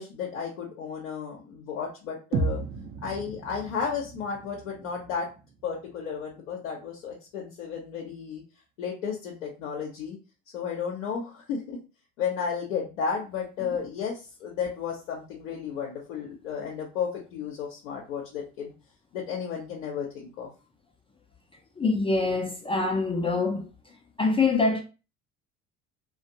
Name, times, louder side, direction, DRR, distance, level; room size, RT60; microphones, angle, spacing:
voice 1, 0.0-2.6 3.0-5.3 5.6-8.4 8.8-10.2 10.5-11.8 12.2-18.7 19.1-20.5, left 6 dB, 75° left, 0.7 m, -33 dB
sound 1, 2.3-6.3, right 3 dB, 35° right, 0.5 m, -34 dB
voice 2, 21.8-23.7 24.2-24.8, left 3 dB, 15° left, 0.4 m, -24 dB
2.4 x 2.1 x 2.7 m
hypercardioid pair, 60°, 40 cm